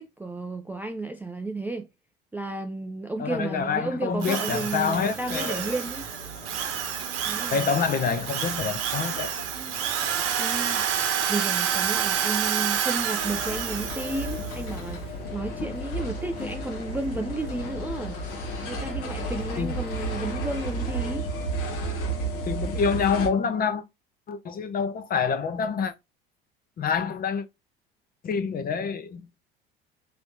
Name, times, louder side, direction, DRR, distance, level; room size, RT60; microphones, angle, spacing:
voice 1, 0.0-1.9 2.3-6.1 7.2-7.7 10.4-10.8 11.3-18.2 18.7-21.3, right 2 dB, 5° right, 0.4 m, -33 dB
voice 2, 3.2-5.8 7.5-9.3 19.6-19.7 22.5-23.8 24.3-25.9 26.8-27.4 28.2-29.3, left 6 dB, 30° left, 0.7 m, -27 dB
Drill, 4.2-14.6, right 9 dB, 50° right, 0.9 m, -29 dB
sound 1, 4.5-21.2, right 1 dB, 90° left, 1.3 m, -43 dB
sound 2, 13.2-23.3, right 1 dB, 50° left, 1.2 m, -32 dB
4.7 x 3.2 x 2.7 m
figure-of-eight pair, 70°, 30 cm